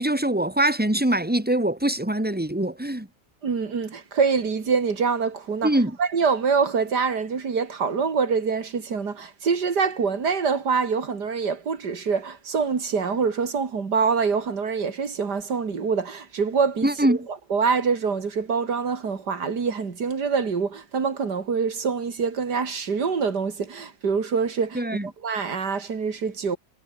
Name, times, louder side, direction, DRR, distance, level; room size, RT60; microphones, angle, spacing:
voice 1, 0.0-3.1 5.6-6.0 16.8-17.2 24.7-25.1, right 1 dB, 5° right, 2.5 m, -23 dB
voice 2, 3.4-5.7 6.0-17.2 17.5-24.8 25.2-26.6, right 5 dB, 65° right, 3.2 m, -25 dB
omnidirectional pair, 1.9 m